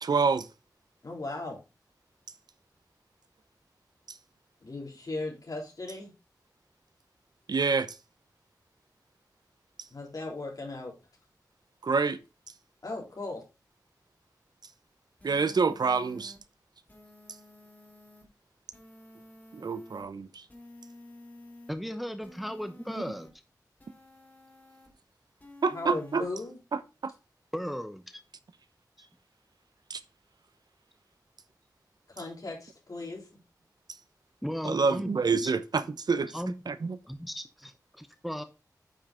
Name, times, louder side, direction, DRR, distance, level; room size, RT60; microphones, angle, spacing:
voice 1, 0.0-0.5 7.5-8.0 11.8-12.2 15.2-16.3 19.5-20.4 25.6-26.2 26.7-27.1 29.9-30.0 34.6-36.4 36.7-37.0, right 4 dB, 80° right, 0.7 m, -27 dB
voice 2, 1.0-1.6 4.6-6.1 9.9-10.9 12.8-13.4 25.7-26.6 32.1-33.3, left 2 dB, 60° left, 3.8 m, -37 dB
sound 1, 15.2-16.4 16.9-18.2 18.7-20.0 20.5-21.7 22.2-23.3 23.8-24.9 25.4-26.2, left 1 dB, 25° left, 3.3 m, -52 dB
voice 3, 21.7-23.3 27.5-28.2 29.0-29.1 34.4-35.5 36.3-36.5 37.0-38.4, equal, ahead, 0.8 m, -36 dB
8.6 x 5.7 x 3.7 m
wide cardioid pair, 80°, 7 cm